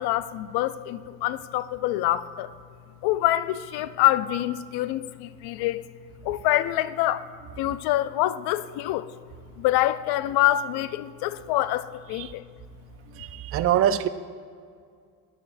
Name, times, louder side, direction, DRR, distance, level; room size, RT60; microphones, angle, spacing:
voice 1, 0.0-2.5 3.0-5.8 6.2-7.3 7.6-9.1 9.6-12.4, left 14 dB, 85° left, 0.5 m, -25 dB
voice 2, 13.2-14.1, right 10 dB, 40° right, 0.4 m, -24 dB
11.5 x 9.8 x 2.6 m
cardioid pair, 100°, 38 cm